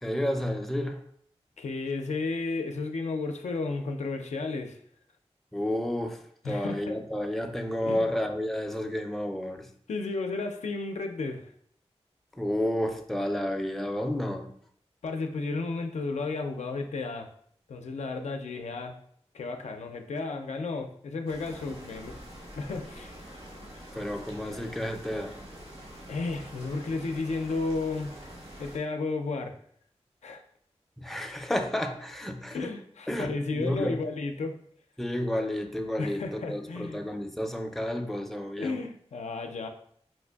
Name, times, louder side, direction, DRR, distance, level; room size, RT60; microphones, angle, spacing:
voice 1, 0.0-1.0 5.5-9.7 12.3-14.5 23.9-25.4 31.0-32.7 33.1-34.0 35.0-38.8, left 1 dB, ahead, 4 dB, 0.4 m, -31 dB
voice 2, 1.6-4.8 6.4-7.0 7.8-8.1 9.9-11.5 15.0-17.3 17.7-18.9 19.3-22.1 22.6-23.1 26.1-28.1 28.6-29.5 30.2-30.4 32.5-34.5 36.0-37.0 38.6-39.7, left 3 dB, 85° left, 5 dB, 0.4 m, -33 dB
sound 1, 21.3-28.8, equal, 55° right, 0.9 m, -46 dB
4.3 x 2.5 x 2.2 m, 0.63 s
wide cardioid pair, 55°, 11 cm